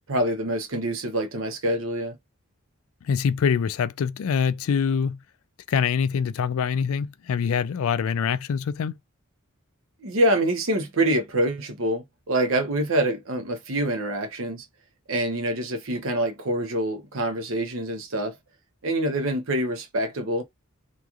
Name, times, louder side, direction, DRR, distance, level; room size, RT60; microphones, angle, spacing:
voice 1, 0.1-2.2 10.0-14.6 15.1-18.4 18.8-20.4, right 1 dB, 65° right, 0.8 m, -25 dB
voice 2, 3.0-5.2 5.7-9.0, left 6 dB, 75° left, 0.4 m, -24 dB
2.9 x 2.4 x 2.4 m
head